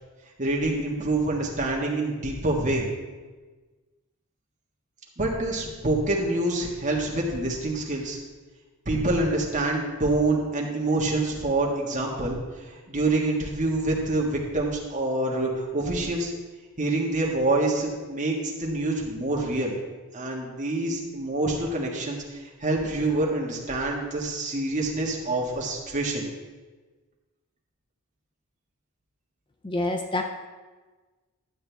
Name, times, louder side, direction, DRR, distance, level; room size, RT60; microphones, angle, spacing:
voice 1, 0.4-2.9 5.2-8.2 8.9-12.4 12.7-16.3 16.8-19.7 20.1-26.3, right 2 dB, 35° right, -2 dB, 1.6 m, -26 dB
voice 2, 29.6-30.2, left 2 dB, 20° left, 4 dB, 0.5 m, -27 dB
12.0 x 7.8 x 3.4 m, 1.3 s
head